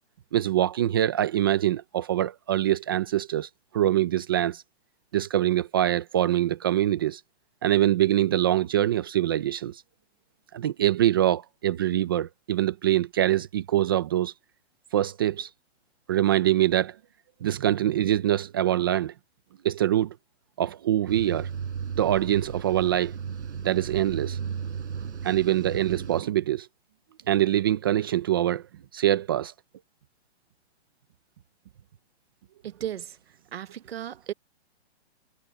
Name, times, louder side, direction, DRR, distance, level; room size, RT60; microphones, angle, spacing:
voice 1, 0.3-4.6 5.1-7.2 7.6-9.8 10.5-14.3 14.9-15.5 16.1-16.9 17.4-19.1 19.6-20.1 20.6-21.5 22.0-23.1 23.6-24.4 25.2-26.7 27.3-28.6 28.9-29.5, right 12 dB, 20° right, 0.6 m, -24 dB
sound 1, 21.1-26.2, right 7 dB, 85° right, 5.0 m, -34 dB
voice 2, 32.6-33.2 33.5-34.3, right 10 dB, 60° right, 1.3 m, -35 dB
hypercardioid pair, 165°, 34 cm